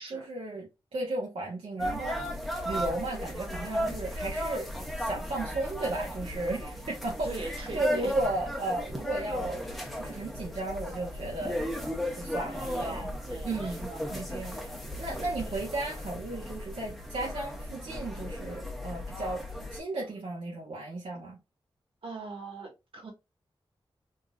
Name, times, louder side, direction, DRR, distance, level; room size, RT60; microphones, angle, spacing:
voice 1, 0.1-4.7 5.0-9.6 10.0-11.6 12.1-13.0 13.4-14.6 15.0-21.4, right 2 dB, 90° right, 0.9 m, -35 dB
sound 1, 1.8-19.8, left 1 dB, ahead, 0.8 m, -36 dB
voice 2, 7.2-8.1 12.4-14.2 14.5-14.8 15.4-15.5 22.0-23.1, right 3 dB, 70° right, 1.4 m, -41 dB
3.7 x 2.6 x 2.2 m
wide cardioid pair, 105°, 9 cm